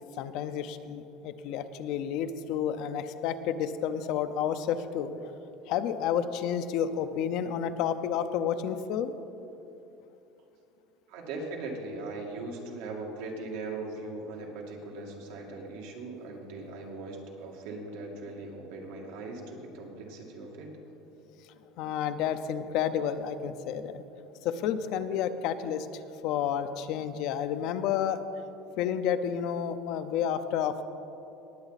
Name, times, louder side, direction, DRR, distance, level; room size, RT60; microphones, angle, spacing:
voice 1, 0.2-5.4 5.7-9.1 21.8-24.0 24.4-25.9 26.2-28.2 28.8-30.8, left 8 dB, 60° left, 10 dB, 0.6 m, -30 dB
voice 2, 11.1-20.7, right 3 dB, 80° right, 0 dB, 2.2 m, -39 dB
19.0 x 8.0 x 4.1 m, 3.0 s
cardioid pair, 150°, 0 cm